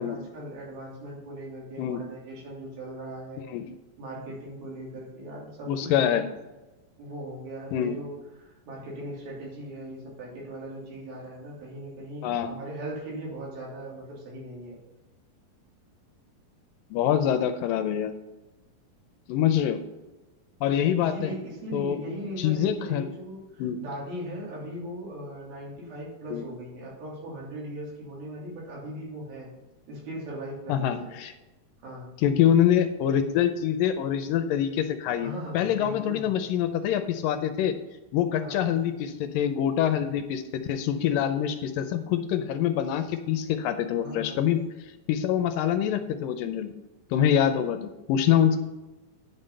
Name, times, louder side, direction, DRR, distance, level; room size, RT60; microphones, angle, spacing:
voice 1, 0.0-3.4 4.0-6.3 7.0-14.8 21.0-29.5 29.9-31.2 31.8-32.1 35.2-36.3 38.4-38.8 44.0-44.4, equal, 85° right, -4 dB, 5.0 m, -39 dB
voice 2, 5.7-6.2 7.7-8.0 12.2-12.5 16.9-18.1 19.3-19.8 20.6-21.3 21.7-22.0 22.4-23.1 23.6-23.8 26.3-26.4 30.7-31.3 32.2-37.7 38.1-44.6 45.1-46.7 47.1-48.6, left 9 dB, 80° left, 8 dB, 2.2 m, -25 dB
10.0 x 5.4 x 5.5 m, 1.1 s
omnidirectional pair, 4.1 m